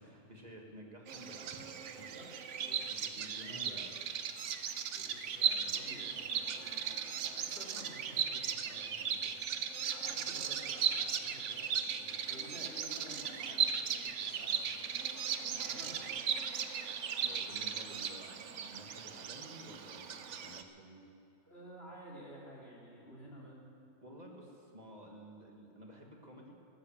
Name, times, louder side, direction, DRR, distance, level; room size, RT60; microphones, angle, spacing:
voice 1, 0.0-2.2 2.9-4.3 17.2-21.1 24.0-26.6, right 1 dB, 30° right, 0 dB, 1.9 m, -52 dB
Bird vocalization bird call bird song, 1.1-20.6, right 7 dB, 65° right, 1.1 m, -37 dB
voice 2, 2.1-2.8 3.0-3.8 4.9-9.4 9.9-15.0 15.3-16.2 21.4-23.6, equal, 50° left, -5 dB, 4.0 m, -53 dB
15.0 x 12.5 x 7.3 m, 2.5 s
omnidirectional pair, 1.4 m